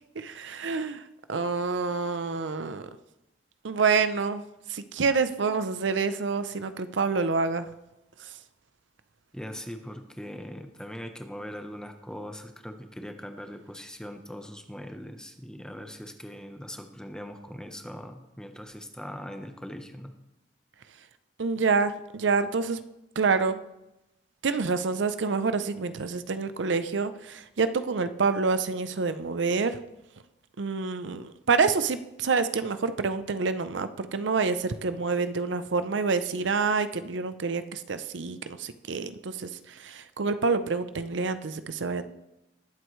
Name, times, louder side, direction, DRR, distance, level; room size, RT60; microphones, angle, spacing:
voice 1, 0.2-1.0 1.3-2.9 3.6-7.7 8.2-8.3 21.4-22.8 23.2-23.5 24.4-29.8 30.6-42.1, right 4 dB, 85° right, 11 dB, 0.6 m, -27 dB
voice 2, 9.3-20.1, equal, 5° left, 5 dB, 0.9 m, -41 dB
20.0 x 7.9 x 3.2 m, 0.93 s
head